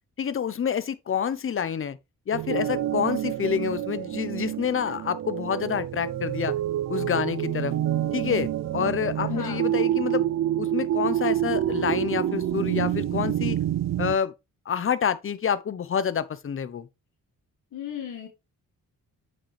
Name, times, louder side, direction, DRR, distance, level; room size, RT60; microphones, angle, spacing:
voice 1, 0.2-2.0 2.3-6.5 6.9-7.7 8.1-10.2 10.6-13.6 14.0-14.3 14.7-16.9, left 8 dB, 40° left, 0.7 m, -28 dB
sound 1, 2.3-14.2, right 12 dB, 55° right, 0.4 m, -27 dB
voice 2, 9.3-9.6 17.7-18.3, left 8 dB, 65° left, 1.7 m, -36 dB
8.9 x 5.3 x 3.2 m
cardioid pair, 105°, 33 cm